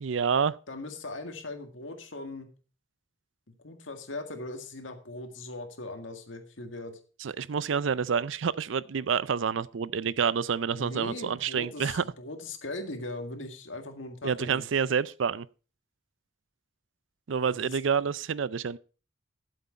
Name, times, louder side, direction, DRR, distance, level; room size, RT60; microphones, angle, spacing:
voice 1, 0.0-0.5 7.2-12.0 14.2-15.5 17.3-18.8, right 6 dB, 80° right, 0.5 m, -28 dB
voice 2, 0.7-2.5 3.6-7.0 10.7-14.7 17.5-17.8, left 2 dB, 85° left, 1.9 m, -39 dB
12.0 x 7.9 x 4.3 m
head